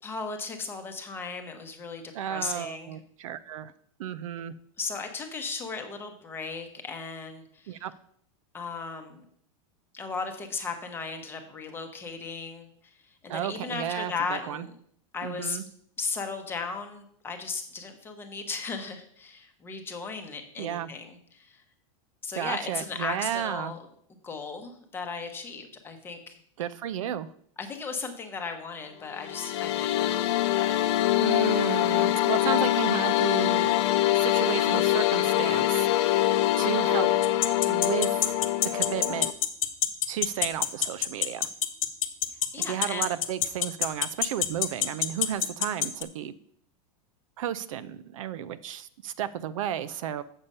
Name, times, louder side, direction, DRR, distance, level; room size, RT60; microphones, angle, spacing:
voice 1, 0.0-3.0 4.8-7.9 8.5-9.2 9.9-14.7 15.1-15.6 16.0-21.6 22.2-23.9 24.2-26.4 27.6-30.8 36.8-37.1 42.5-43.1, left 4 dB, 10° left, 5 dB, 0.9 m, -36 dB
voice 2, 2.1-3.7 4.0-4.5 7.7-7.9 13.3-14.7 15.2-15.6 20.6-20.9 22.4-23.7 26.6-27.3 31.2-33.7 34.1-35.9 36.6-37.1 37.7-38.2 38.6-39.3 40.1-41.5 42.7-46.3 47.4-50.2, right 10 dB, 65° right, 14 dB, 0.6 m, -33 dB
sound 1, 29.1-39.3, left 14 dB, 50° left, 0.6 m, -24 dB
sound 2, 37.2-46.0, left 12 dB, 75° left, 1.0 m, -24 dB
7.2 x 6.8 x 5.4 m, 0.65 s
supercardioid pair, 165°, 18 cm